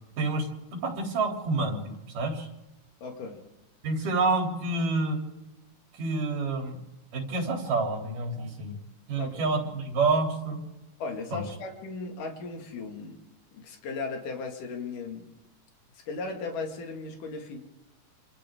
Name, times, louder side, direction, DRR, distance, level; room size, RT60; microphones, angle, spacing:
voice 1, 0.7-1.8 2.1-2.5 3.8-5.2 6.0-6.8 7.1-8.8 9.1-10.6 11.3-11.4, right 3 dB, 80° right, 1 dB, 4.9 m, -28 dB
voice 2, 3.0-3.4 9.2-9.5 11.0-13.2 13.5-15.3 15.9-17.6, left 4 dB, 80° left, 2 dB, 3.9 m, -36 dB
27.5 x 27.0 x 3.8 m, 0.98 s
omnidirectional pair, 3.7 m